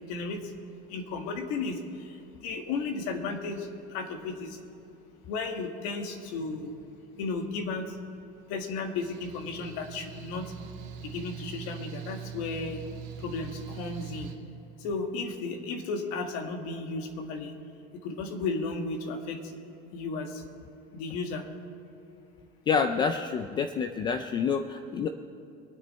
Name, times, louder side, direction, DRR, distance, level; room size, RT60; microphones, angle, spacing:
voice 1, 0.1-0.4 0.9-1.8 2.4-3.6 3.9-4.6 5.3-6.7 7.2-7.9 8.5-10.4 11.0-12.8 13.2-14.3 14.8-17.5 18.0-19.4 19.9-20.3 20.9-21.4, left 3 dB, 80° left, 4 dB, 1.7 m, -34 dB
Mechanical fan, 9.0-14.3, right 8 dB, 60° right, 2.0 m, -42 dB
voice 2, 22.7-25.1, left 6 dB, 20° left, 7 dB, 0.4 m, -28 dB
23.0 x 9.5 x 4.3 m, 2.8 s
cardioid pair, 180°, 21 cm